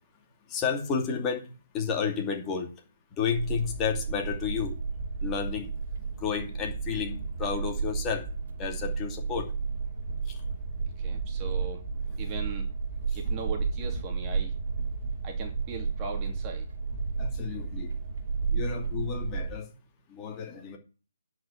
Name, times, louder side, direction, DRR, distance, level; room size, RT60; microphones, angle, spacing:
voice 1, 0.5-1.4 1.7-2.7 3.2-4.7 5.2-5.7 6.2-8.2 8.6-9.5 17.2-17.9 18.5-19.7 20.1-20.8, left 6 dB, 20° left, 2.5 m, -31 dB
sound 1, 3.3-19.5, right 5 dB, 50° right, 2.6 m, -32 dB
voice 2, 11.0-11.9 12.2-12.7 13.1-14.5 15.2-16.7, right 5 dB, 25° right, 2.8 m, -39 dB
10.5 x 5.8 x 8.4 m
figure-of-eight pair, 140°, 0 cm